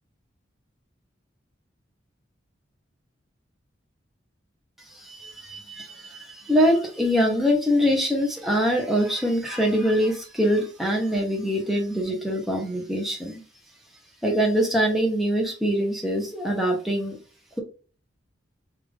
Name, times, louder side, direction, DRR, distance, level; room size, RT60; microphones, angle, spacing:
voice 1, 4.8-13.4 14.2-17.2, equal, ahead, -1 dB, 0.7 m, -24 dB
3.3 x 2.4 x 3.4 m, 0.38 s
head